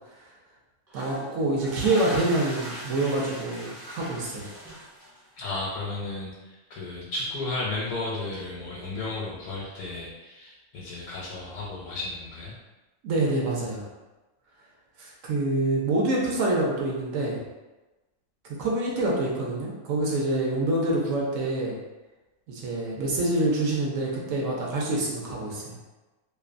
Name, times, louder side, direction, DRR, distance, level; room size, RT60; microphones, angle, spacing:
sound 1, 0.9-5.4, equal, 40° right, 0.6 m, -39 dB
voice 1, 0.9-4.5 13.0-13.8 15.0-17.4 18.6-21.8 22.5-25.7, right 2 dB, 70° right, -3 dB, 0.9 m, -26 dB
voice 2, 5.4-12.5, left 2 dB, 80° left, -5 dB, 1.0 m, -34 dB
2.7 x 2.1 x 2.4 m, 1.1 s
omnidirectional pair, 1.5 m